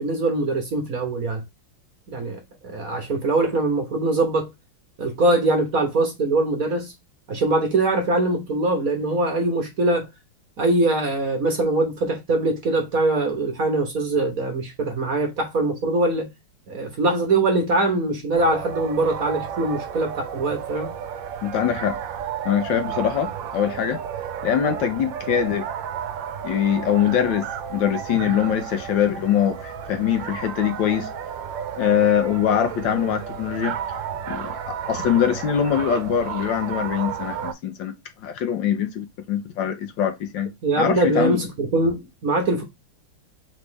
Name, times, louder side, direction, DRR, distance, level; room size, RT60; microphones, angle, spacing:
voice 1, 0.0-1.4 2.1-4.5 5.0-6.9 7.3-10.1 10.6-16.3 16.7-20.9 40.6-42.6, right 2 dB, 50° right, 1.2 m, -22 dB
sound 1, 18.3-37.5, right 8 dB, 70° right, 1.3 m, -32 dB
voice 2, 21.4-22.0 22.4-24.0 24.4-25.7 26.4-31.1 31.8-33.8 34.3-37.9 38.2-40.5 40.8-41.4, left 9 dB, 70° left, 1.3 m, -23 dB
4.0 x 3.2 x 3.3 m
omnidirectional pair, 2.3 m